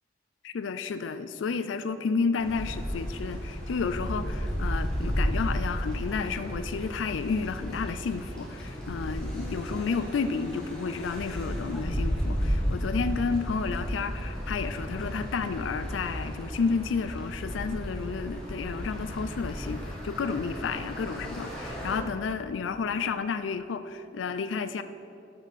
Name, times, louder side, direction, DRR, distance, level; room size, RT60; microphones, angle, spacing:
voice 1, 0.4-24.8, left 5 dB, 90° left, 11 dB, 0.4 m, -31 dB
sound 1, 2.4-22.0, equal, 5° left, 1.5 m, -33 dB
11.5 x 6.2 x 4.1 m, 2.8 s
head